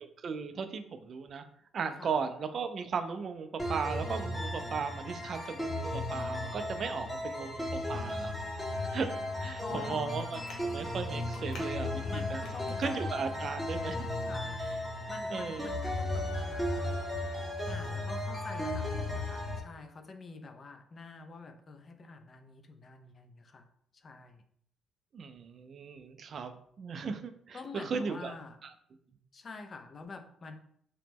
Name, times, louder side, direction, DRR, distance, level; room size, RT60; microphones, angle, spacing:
voice 1, 0.0-1.5 1.7-8.4 8.9-9.1 9.4-12.4 12.8-14.0 15.3-15.7 25.1-28.3, right 5 dB, 55° right, 9 dB, 0.3 m, -36 dB
sound 1, 3.6-19.6, left 1 dB, 5° left, 0.7 m, -35 dB
Traffic noise roadway noise, 8.7-14.1, left 2 dB, 75° left, 0.7 m, -52 dB
voice 2, 9.6-10.1 12.1-12.8 14.2-14.6 15.1-17.2 17.7-23.7 23.9-24.4 27.5-28.6 29.3-30.6, left 4 dB, 40° left, 6 dB, 0.4 m, -47 dB
2.9 x 2.0 x 3.4 m, 0.66 s
cardioid pair, 90°, 0 cm